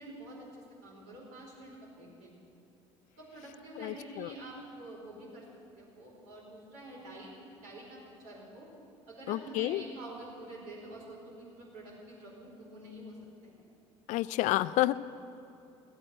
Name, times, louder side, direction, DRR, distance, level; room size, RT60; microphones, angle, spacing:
voice 1, 0.0-2.3 3.2-5.5 5.8-8.7 9.1-13.2 13.4-13.5, right 1 dB, 70° right, -4 dB, 4.6 m, -47 dB
voice 2, 3.8-4.3 9.3-9.8 14.1-15.0, left 16 dB, 55° left, 17 dB, 0.4 m, -30 dB
14.5 x 8.7 x 9.0 m, 2.7 s
hypercardioid pair, 60°, 15 cm